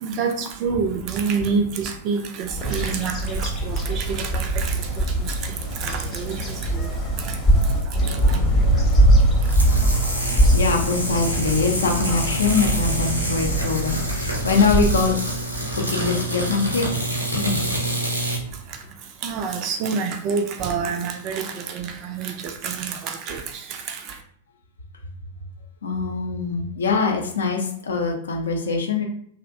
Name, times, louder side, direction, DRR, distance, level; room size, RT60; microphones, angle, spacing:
voice 1, 0.0-5.5 5.8-6.9 7.2-7.4 8.1-8.4 19.2-24.0, right 5 dB, 35° right, 5 dB, 0.4 m, -27 dB
Bird vocalization bird call bird song, 2.5-15.8, right 1 dB, 20° left, 0.7 m, -22 dB
sound 1, 9.4-18.4, right 1 dB, 85° right, 0.7 m, -27 dB
voice 2, 9.5-15.4 15.7-17.7 25.8-29.0, left 4 dB, 65° left, 1 dB, 0.5 m, -24 dB
2.6 x 2.1 x 2.5 m, 0.62 s
figure-of-eight pair, 95°, 0 cm